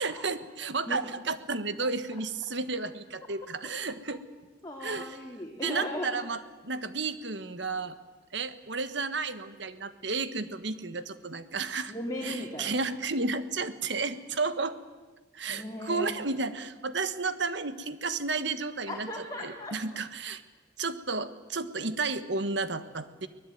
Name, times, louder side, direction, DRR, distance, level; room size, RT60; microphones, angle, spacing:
voice 1, 0.0-4.2 4.8-5.2 5.6-8.0 8.3-11.9 12.2-14.7 15.3-19.1 19.4-20.4 20.8-23.3, right 4 dB, 65° right, 11 dB, 1.5 m, -32 dB
voice 2, 1.8-2.2 4.6-6.2 11.9-12.8 15.5-16.2 18.9-19.8, left 1 dB, 20° left, -1 dB, 2.8 m, -37 dB
24.0 x 19.5 x 9.4 m, 1.3 s
head